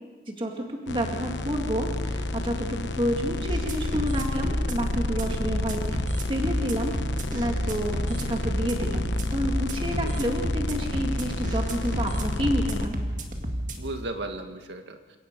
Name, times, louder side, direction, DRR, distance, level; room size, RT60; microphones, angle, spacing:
voice 1, 0.3-13.0, equal, 30° right, 1 dB, 2.2 m, -30 dB
sound 1, 0.9-12.9, left 2 dB, 90° left, 1.0 m, -31 dB
sound 2, 3.5-13.9, right 1 dB, 45° right, 2.0 m, -32 dB
voice 2, 9.7-10.5 13.8-15.2, right 2 dB, 85° right, 5 dB, 1.8 m, -36 dB
29.0 x 18.0 x 5.4 m, 1.3 s
head